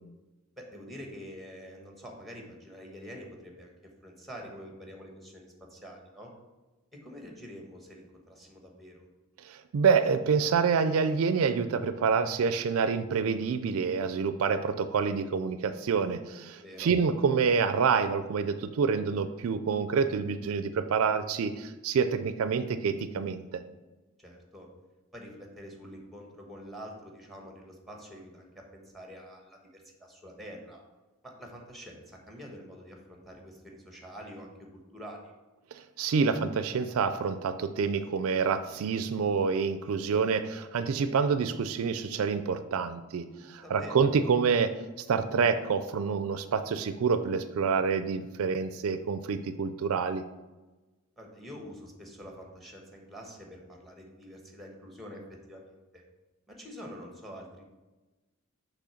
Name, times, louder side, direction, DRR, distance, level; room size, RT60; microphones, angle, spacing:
voice 1, 0.6-3.7 4.0-6.3 6.9-9.1 16.5-16.9 24.2-24.7 25.1-30.8 31.2-35.3 43.5-44.0 51.2-55.2 55.5-56.0 56.5-57.7, equal, ahead, 1 dB, 1.1 m, -46 dB
voice 2, 9.4-23.6 35.7-44.7 45.1-50.2, right 5 dB, 70° right, 10 dB, 0.4 m, -27 dB
6.1 x 3.3 x 5.7 m, 1.1 s
head